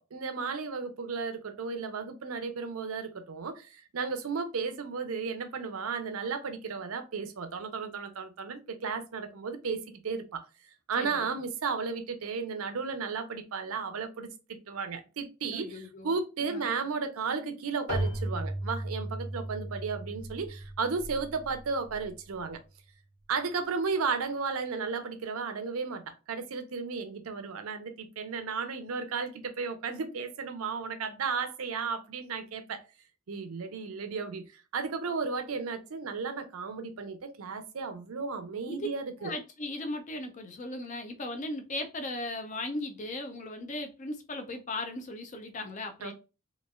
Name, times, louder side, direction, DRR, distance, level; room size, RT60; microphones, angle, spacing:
voice 1, 0.1-10.5 10.9-14.3 14.7-22.6 23.3-32.8 33.3-39.3 46.0-46.1, right 5 dB, 85° right, 0.6 m, -34 dB
voice 2, 11.0-11.4 15.5-16.7 38.7-38.9 39.2-46.1, left 2 dB, 35° left, 0.5 m, -37 dB
Keyboard (musical), 17.9-22.4, right 1 dB, 90° left, 1.2 m, -36 dB
3.1 x 2.4 x 2.3 m
head